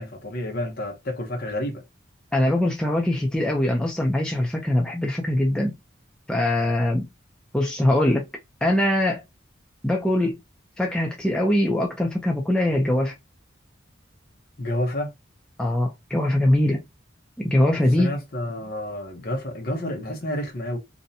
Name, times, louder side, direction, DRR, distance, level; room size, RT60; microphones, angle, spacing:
voice 1, 0.0-1.8 14.6-15.1 17.8-20.8, left 1 dB, 50° left, 0.8 m, -29 dB
voice 2, 2.3-5.7 6.3-7.1 7.5-8.3 8.6-9.2 9.8-10.4 10.8-13.1 15.6-16.9 17.4-18.2, left 1 dB, 5° left, 0.4 m, -22 dB
2.6 x 2.1 x 2.6 m
head